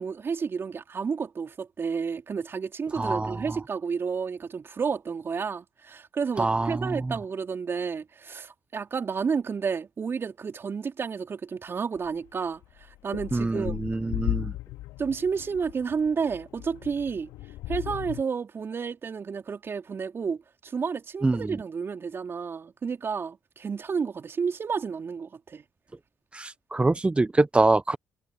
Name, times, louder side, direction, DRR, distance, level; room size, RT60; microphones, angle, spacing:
voice 1, 0.0-13.8 15.0-17.3 17.7-25.6, right 5 dB, 40° right, 3.3 m, -31 dB
voice 2, 2.9-3.6 6.4-7.0 13.3-14.5 21.2-21.6 26.3-28.0, right 2 dB, 20° right, 0.9 m, -25 dB
sound 1, 12.0-12.1 12.6-18.2, left 16 dB, 70° left, 2.7 m, -36 dB
hypercardioid pair, 50°, 6 cm